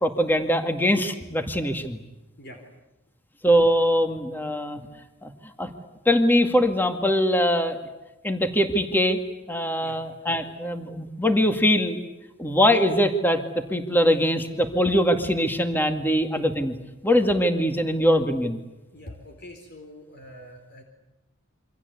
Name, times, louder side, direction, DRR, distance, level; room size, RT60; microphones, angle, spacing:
voice 1, 0.0-2.0 3.4-4.8 5.2-5.3 5.6-5.7 6.1-7.8 8.2-9.2 9.5-12.0 12.4-13.4 13.7-16.7 17.0-18.6, equal, 10° left, 6 dB, 2.2 m, -22 dB
voice 2, 18.9-20.8, left 1 dB, 50° left, 4 dB, 4.1 m, -44 dB
27.5 x 25.5 x 8.3 m, 1.0 s
head